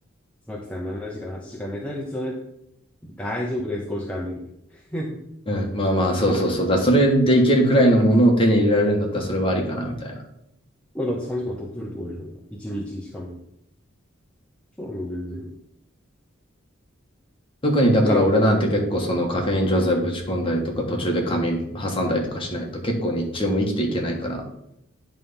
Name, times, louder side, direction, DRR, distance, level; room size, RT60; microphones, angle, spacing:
voice 1, 0.5-2.4 3.0-4.4 4.7-5.2 10.9-13.4 14.8-15.5 18.0-18.2, left 1 dB, 5° left, -2 dB, 0.7 m, -30 dB
voice 2, 5.5-10.2 17.6-24.4, equal, 25° left, 1 dB, 1.3 m, -21 dB
9.0 x 3.4 x 5.5 m, 0.78 s
head